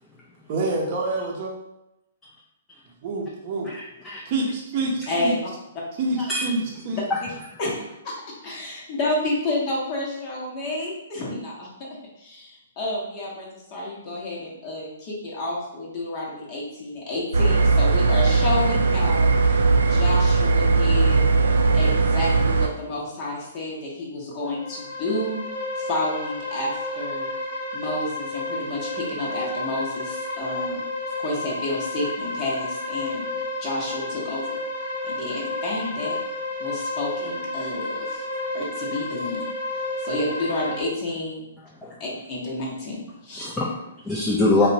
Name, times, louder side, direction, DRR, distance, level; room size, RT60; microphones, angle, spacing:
voice 1, 0.5-1.5 3.0-3.7 4.3-5.4 6.0-7.0, right 2 dB, 40° right, -2 dB, 0.6 m, -27 dB
voice 2, 3.7-4.2 6.3-6.5 7.1-7.2 41.8-42.0 43.3-44.7, left 2 dB, 10° left, -5 dB, 0.4 m, -24 dB
voice 3, 5.1-5.4 6.9-7.0 7.6-8.1 8.4-11.9 12.2-21.2 21.7-25.4 25.8-27.3 27.7-30.8 31.2-33.3 33.6-34.6 35.0-36.2 36.6-38.2 38.5-39.4 40.0-41.5 42.0-43.4, left 2 dB, 35° left, -5 dB, 0.8 m, -30 dB
sound 1, 17.3-22.7, right 4 dB, 85° right, 0.3 m, -19 dB
sound 2, 24.5-40.8, left 2 dB, 75° left, 0.7 m, -31 dB
2.8 x 2.1 x 2.6 m, 0.87 s
hypercardioid pair, 140°, 0 cm